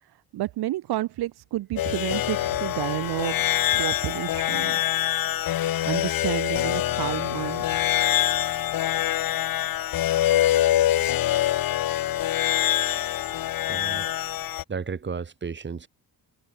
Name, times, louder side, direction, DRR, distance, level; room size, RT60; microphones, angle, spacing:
voice 1, 0.3-3.4 3.7-4.8 5.8-7.8, right 15 dB, 75° right, 0.7 m, -30 dB
sound 1, 1.8-14.6, left 13 dB, 60° left, 0.8 m, -25 dB
voice 2, 13.7-14.1 14.7-15.9, right 5 dB, 30° right, 2.0 m, -33 dB
cardioid pair, 130°, 39 cm